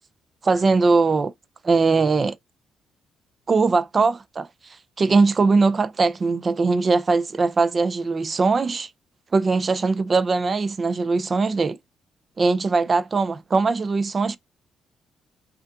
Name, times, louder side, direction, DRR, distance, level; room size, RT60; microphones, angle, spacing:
voice 1, 0.4-1.3 1.6-2.4 3.5-4.5 5.0-8.9 9.3-11.8 12.4-14.4, right 4 dB, 30° right, 0.4 m, -20 dB
5.4 x 2.4 x 3.6 m
cardioid pair, 150°, 0 cm